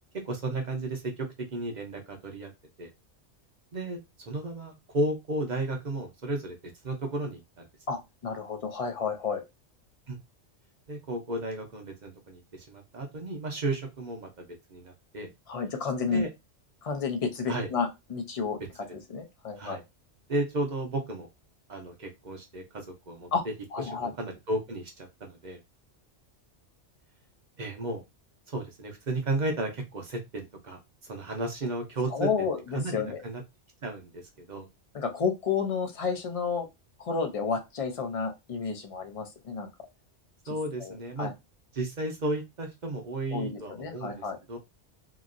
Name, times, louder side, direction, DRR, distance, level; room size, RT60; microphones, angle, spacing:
voice 1, 0.2-2.5 2.8-2.9 3.7-4.0 4.3-6.6 6.8-7.7 10.1-10.2 10.9-15.3 16.1-16.3 17.5-17.7 19.6-19.8 20.3-21.3 21.7-23.3 23.9-25.6 27.6-28.0 28.5-30.8 31.1-32.3 32.7-33.4 33.8-34.2 34.5-34.7 40.5-41.3 41.7-44.6, right 2 dB, 45° right, 3 dB, 0.7 m, -33 dB
voice 2, 7.9-9.4 15.5-16.2 16.8-18.6 18.9-19.8 23.3-23.4 23.7-24.1 32.1-33.2 34.9-36.7 37.0-39.7 40.5-41.3 43.3-44.4, left 5 dB, 40° left, 5 dB, 0.6 m, -31 dB
2.9 x 2.5 x 2.5 m, 0.22 s
omnidirectional pair, 1.2 m